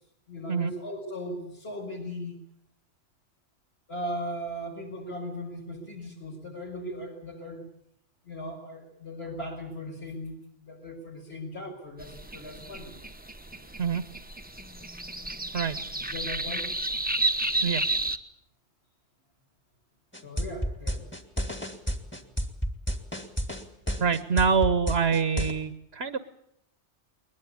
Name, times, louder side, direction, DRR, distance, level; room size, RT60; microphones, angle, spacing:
voice 1, 0.3-2.4 3.9-7.7 8.2-13.0 16.1-16.7 20.2-21.0, equal, 60° left, 1 dB, 6.5 m, -38 dB
sound 1, 12.0-18.2, right 2 dB, 10° right, 0.9 m, -31 dB
sound 2, 20.1-25.5, equal, 10° left, 2.0 m, -30 dB
voice 2, 24.0-26.2, right 5 dB, 65° right, 12 dB, 1.4 m, -25 dB
21.5 x 21.0 x 8.5 m, 0.73 s
omnidirectional pair, 1.2 m